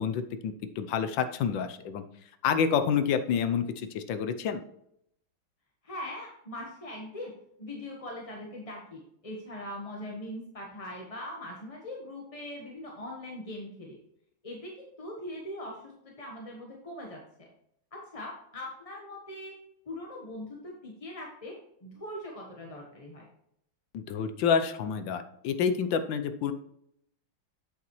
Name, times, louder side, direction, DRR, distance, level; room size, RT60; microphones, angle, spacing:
voice 1, 0.0-2.0 2.4-4.6 23.9-26.5, left 7 dB, 70° left, 10 dB, 1.3 m, -28 dB
voice 2, 5.8-7.3 7.6-14.0 14.4-17.5 17.9-19.6 19.9-23.3, left 1 dB, 25° left, -1 dB, 0.9 m, -41 dB
8.3 x 8.1 x 3.1 m, 0.74 s
omnidirectional pair, 2.3 m